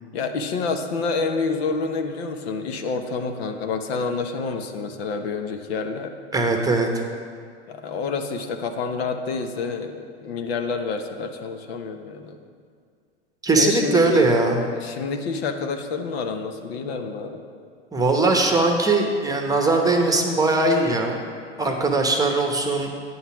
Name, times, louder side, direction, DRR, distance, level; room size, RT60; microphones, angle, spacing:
voice 1, 0.1-6.1 7.7-12.4 13.5-14.3 14.8-17.4, left 4 dB, 60° left, 6 dB, 1.0 m, -28 dB
voice 2, 6.3-6.9 13.4-14.6 17.9-21.2 21.6-22.9, right 3 dB, 10° right, 3 dB, 1.0 m, -20 dB
9.5 x 5.6 x 7.1 m, 2.1 s
hypercardioid pair, 105°, 34 cm